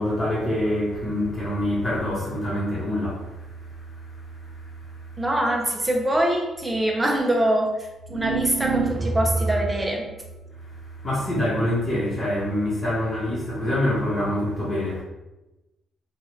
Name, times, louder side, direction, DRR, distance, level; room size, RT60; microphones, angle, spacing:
voice 1, 0.0-5.2 10.6-15.0, left 1 dB, 30° left, 1.1 m, -26 dB
voice 2, 5.2-7.7 8.1-10.1, right 1 dB, 15° right, 0.7 m, -23 dB
sound 1, 8.1-9.9, right 4 dB, 60° right, 0.3 m, -26 dB
2.9 x 2.3 x 3.1 m
cardioid pair, 90°, 0 cm